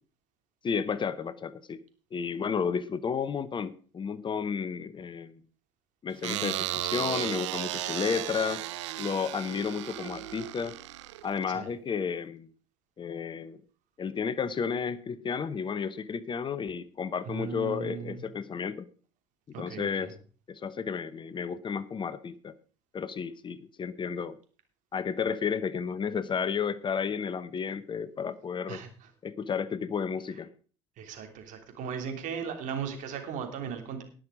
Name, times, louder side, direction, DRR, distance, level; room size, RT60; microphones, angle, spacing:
voice 1, 0.6-1.8 2.1-5.4 6.0-8.6 9.0-10.7 11.2-12.5 13.0-13.6 14.0-18.9 19.6-20.1 20.5-22.5 22.9-24.4 24.9-28.8 29.2-30.5, left 6 dB, 30° left, 15 dB, 0.9 m, -32 dB
sound 1, 6.2-11.5, right 14 dB, 80° right, 0.8 m, -35 dB
voice 2, 17.2-18.2 19.5-20.1 28.7-29.1 31.0-34.0, right 6 dB, 55° right, 5 dB, 3.2 m, -37 dB
19.0 x 6.4 x 4.9 m, 0.40 s
hypercardioid pair, 70°, 15 cm